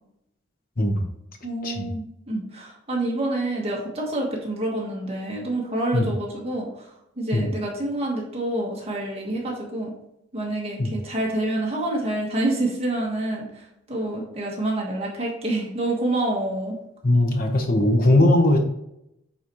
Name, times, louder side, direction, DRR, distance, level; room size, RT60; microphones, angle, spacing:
voice 1, 1.4-6.9 7.2-9.9 10.3-16.8, right 1 dB, 30° right, -2 dB, 1.5 m, -27 dB
voice 2, 17.0-18.6, left 1 dB, 45° left, 3 dB, 1.0 m, -19 dB
8.4 x 4.1 x 3.1 m, 0.82 s
head